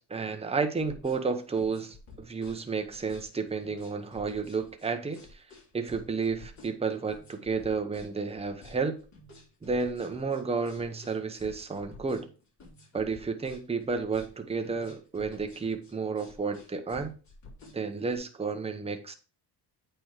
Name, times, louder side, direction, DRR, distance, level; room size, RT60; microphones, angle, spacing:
voice 1, 0.1-5.2 5.7-9.0 9.6-12.3 12.9-17.1 17.7-19.1, right 4 dB, 15° right, 0.9 m, -31 dB
sound 1, 0.9-18.2, left 3 dB, 40° left, 3.2 m, -51 dB
8.6 x 4.5 x 4.7 m
cardioid pair, 135°, 42 cm